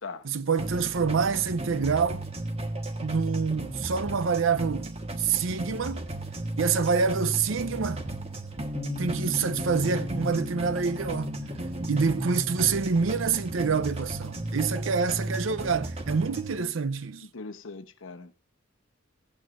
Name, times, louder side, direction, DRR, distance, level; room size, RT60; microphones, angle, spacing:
voice 1, 0.2-2.2 3.0-6.1 6.6-8.1 9.0-11.4 11.9-17.3, right 5 dB, 75° right, 0.6 m, -27 dB
sound 1, 0.6-16.6, right 1 dB, 30° right, 1.2 m, -34 dB
Bass guitar, 8.8-15.0, left 2 dB, 35° left, 0.5 m, -40 dB
voice 2, 17.3-18.4, left 4 dB, 75° left, 1.0 m, -40 dB
16.0 x 8.9 x 2.5 m
head